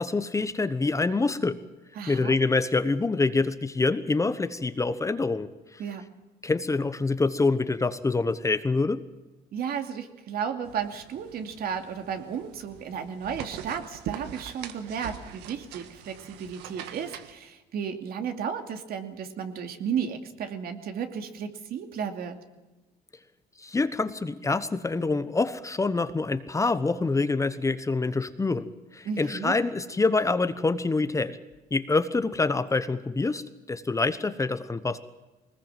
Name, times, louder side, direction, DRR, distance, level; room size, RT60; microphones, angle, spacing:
voice 1, 0.0-1.6 2.1-5.8 6.4-9.0 23.6-28.7 28.9-31.4 31.7-35.0, left 3 dB, 20° left, 11 dB, 1.1 m, -26 dB
voice 2, 1.9-2.4 5.8-6.1 9.5-22.4 29.0-29.5, right 7 dB, 65° right, 6 dB, 2.6 m, -33 dB
sound 1, 10.6-17.3, right 10 dB, 90° right, 1.6 m, -43 dB
21.0 x 20.0 x 7.6 m, 1.1 s
cardioid pair, 110°, 17 cm